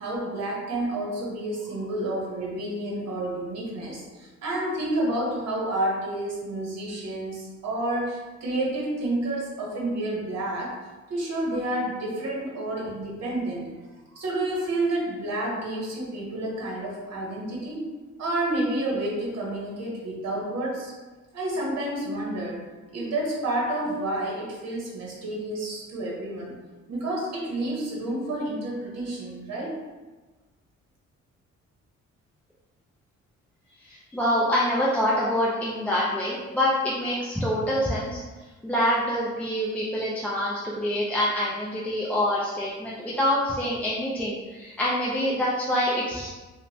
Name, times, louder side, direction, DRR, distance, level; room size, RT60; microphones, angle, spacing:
voice 1, 0.0-10.8 11.1-13.7 14.1-17.8 18.2-20.9 21.3-26.5 26.9-29.8, right 1 dB, 60° right, -3 dB, 0.9 m, -30 dB
voice 2, 33.8-38.2 38.6-46.3, equal, 5° left, -7 dB, 0.4 m, -26 dB
2.9 x 2.2 x 2.7 m, 1.2 s
cardioid pair, 90°, 30 cm